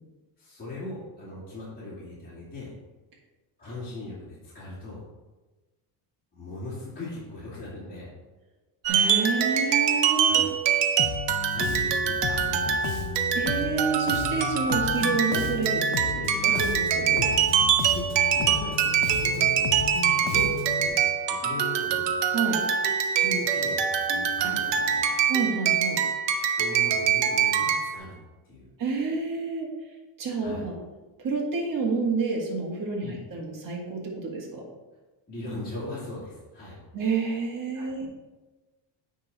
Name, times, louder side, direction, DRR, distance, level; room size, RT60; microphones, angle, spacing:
voice 1, 0.4-2.7 3.6-5.1 6.3-8.1 10.3-10.5 11.4-12.9 16.4-16.7 17.1-17.5 17.9-18.1 18.3-22.2 23.2-25.2 26.5-28.1 28.5-28.7 30.4-30.7 33.0-33.2 35.3-36.8 37.7-37.9, left 2 dB, 20° left, -9 dB, 2.3 m, -39 dB
voice 2, 8.8-10.4 13.3-17.1 22.3-22.6 25.3-26.0 28.8-29.7 30.2-30.7 31.2-34.6 36.9-38.1, right 4 dB, 40° right, -2 dB, 1.9 m, -29 dB
sound 1, 8.8-27.9, right 7 dB, 60° right, 0.8 m, -24 dB
Bass guitar, 11.0-20.9, left 9 dB, 70° left, 0.7 m, -34 dB
9.5 x 3.8 x 4.2 m, 1.2 s
cardioid pair, 120°, 48 cm